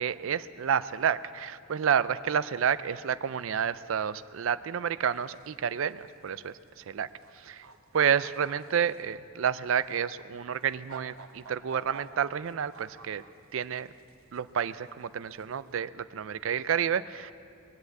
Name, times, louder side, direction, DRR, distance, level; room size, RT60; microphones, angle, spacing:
voice 1, 0.0-7.1 7.3-7.7 7.9-13.2 13.5-13.9 14.3-17.3, right 8 dB, 70° right, 15 dB, 0.4 m, -30 dB
sound 1, 5.2-5.5 5.9-6.3 7.1-7.3 7.6-9.0 9.9-10.0 10.6-13.5 13.8-14.4 15.3-15.6, right 4 dB, 85° right, 1.0 m, -49 dB
21.0 x 8.0 x 8.2 m, 2.3 s
head